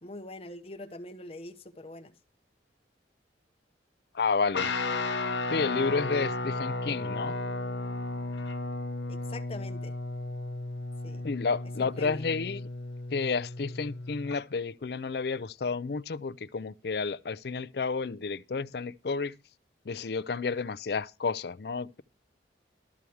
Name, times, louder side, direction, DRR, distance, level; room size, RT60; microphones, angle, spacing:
voice 1, 0.0-2.2 9.1-10.0 11.0-11.2 11.8-12.3, left 1 dB, 30° left, 0.9 m, -44 dB
voice 2, 4.1-4.7 5.5-7.4 11.2-12.6 13.1-19.3 19.9-22.0, left 4 dB, 60° left, 0.5 m, -31 dB
Guitar, 4.5-14.4, left 2 dB, 80° left, 0.9 m, -34 dB
13.0 x 4.6 x 7.0 m
head